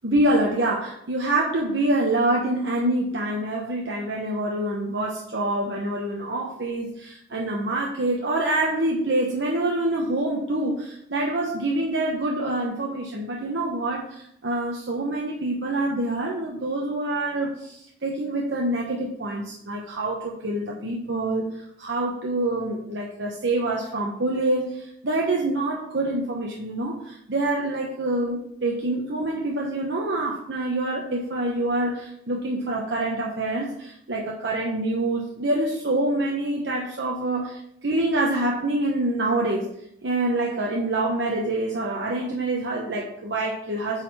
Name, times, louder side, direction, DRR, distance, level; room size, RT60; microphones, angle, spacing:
voice 1, 0.0-39.7 40.0-44.0, right 2 dB, 75° right, -2 dB, 1.0 m, -26 dB
8.8 x 4.1 x 4.1 m, 0.73 s
head